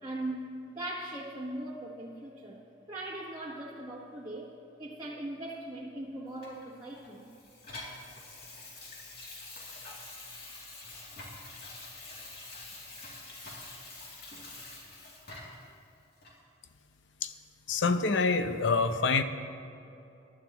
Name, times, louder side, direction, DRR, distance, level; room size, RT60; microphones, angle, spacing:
voice 1, 0.0-2.6 2.9-7.3, right 1 dB, 20° right, -5 dB, 1.2 m, -40 dB
Water tap faucet / Sink (filling or washing), 6.4-15.7 16.2-16.4, left 2 dB, 55° left, 2.6 m, -46 dB
voice 2, 17.7-19.2, left 4 dB, 75° left, 10 dB, 0.6 m, -26 dB
21.5 x 11.5 x 2.9 m, 2.7 s
head